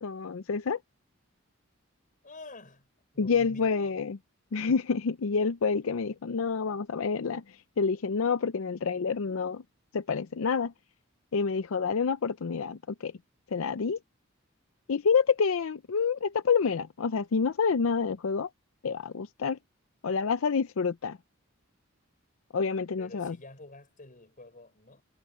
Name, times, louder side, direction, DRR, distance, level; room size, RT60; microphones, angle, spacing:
voice 1, 0.0-0.8 3.2-4.2 4.5-9.6 9.9-10.7 11.3-13.1 13.5-14.0 14.9-18.5 18.8-19.6 20.0-21.2 22.5-23.4, left 5 dB, 80° left, 0.5 m, -28 dB
voice 2, 2.2-2.9 3.1-3.9 23.0-25.0, left 2 dB, 40° left, 6.3 m, -49 dB
head